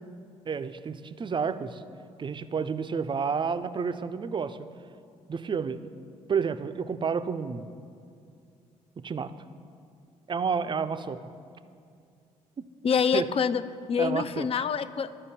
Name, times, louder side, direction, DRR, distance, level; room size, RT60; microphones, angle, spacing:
voice 1, 0.5-1.8 2.2-4.6 5.3-5.9 6.3-7.7 9.0-9.3 10.3-11.2 12.6-12.7 13.1-13.3 14.0-14.5, right 6 dB, 30° right, 12 dB, 0.4 m, -30 dB
voice 2, 12.8-13.6 13.9-15.1, left 6 dB, 35° left, 14 dB, 0.4 m, -26 dB
12.5 x 5.1 x 4.2 m, 2.4 s
hypercardioid pair, 50°, 17 cm